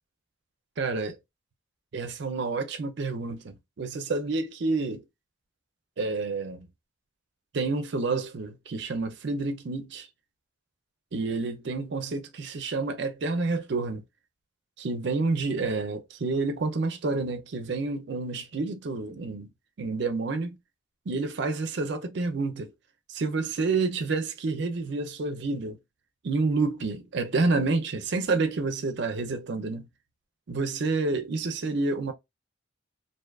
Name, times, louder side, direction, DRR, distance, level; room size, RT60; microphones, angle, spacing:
voice 1, 0.8-1.2 1.9-5.0 6.0-6.7 7.5-10.1 11.1-14.0 14.8-19.5 19.8-20.6 21.1-22.7 23.1-25.8 26.2-29.9 30.5-32.1, right 3 dB, 55° right, 0.4 m, -29 dB
2.6 x 2.3 x 2.2 m
head